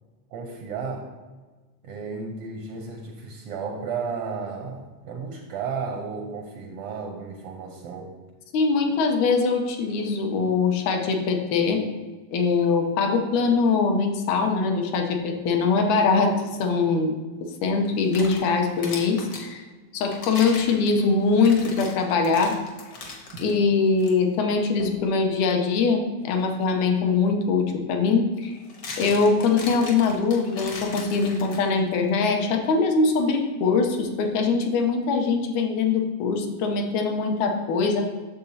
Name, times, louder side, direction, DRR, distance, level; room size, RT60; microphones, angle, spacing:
voice 1, 0.3-1.1 1.8-8.2, right 5 dB, 80° right, 3 dB, 1.3 m, -33 dB
voice 2, 8.5-11.8 12.3-17.1 17.6-19.6 19.9-22.6 23.4-28.5 29.0-38.0, left 4 dB, 85° left, 3 dB, 2.2 m, -22 dB
sound 1, 17.8-19.5 20.1-23.5 24.0-24.1 24.8-25.0 27.1-27.2 28.4-31.9, left 3 dB, 55° left, 1.2 m, -39 dB
8.5 x 6.8 x 2.8 m, 1.4 s
omnidirectional pair, 3.4 m